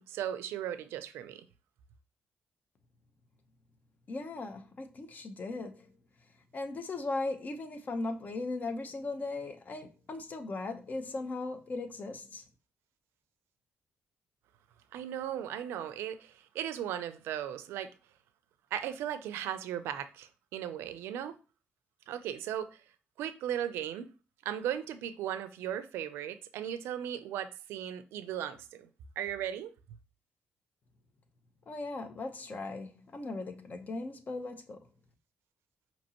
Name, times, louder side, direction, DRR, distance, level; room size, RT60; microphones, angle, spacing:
voice 1, 0.0-1.4 14.9-17.9 18.7-21.4 22.1-22.8 23.2-24.1 24.5-28.9 29.2-29.7, right 10 dB, 90° right, 0.5 m, -37 dB
voice 2, 4.1-5.9 6.5-12.4 31.7-34.8, left 3 dB, 45° left, 0.8 m, -38 dB
5.2 x 2.9 x 2.9 m
cardioid pair, 80°, 4 cm